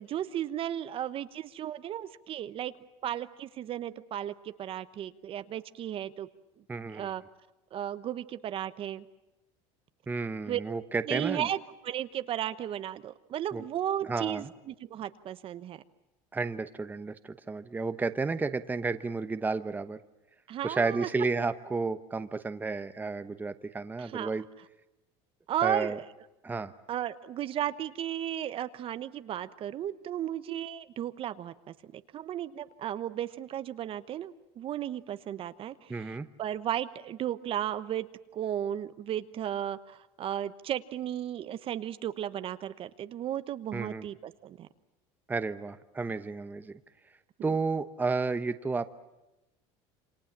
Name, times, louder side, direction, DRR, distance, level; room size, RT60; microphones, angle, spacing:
voice 1, 0.0-2.7 3.0-6.3 6.9-7.2 7.7-9.0 10.5-10.6 11.1-11.6 11.8-15.8 20.5-21.1 24.0-24.3 25.5-26.1 26.9-38.1 38.3-44.7, right 11 dB, 45° right, 12 dB, 1.0 m, -34 dB
voice 2, 6.7-7.1 10.1-11.5 13.5-13.6 14.0-14.5 16.3-20.0 20.6-24.4 25.6-26.0 26.4-26.7 35.9-36.3 43.7-44.0 45.3-46.8 47.4-48.9, right 4 dB, 15° right, 10 dB, 1.0 m, -32 dB
28.0 x 25.5 x 7.4 m, 0.96 s
supercardioid pair, 120°, 14 cm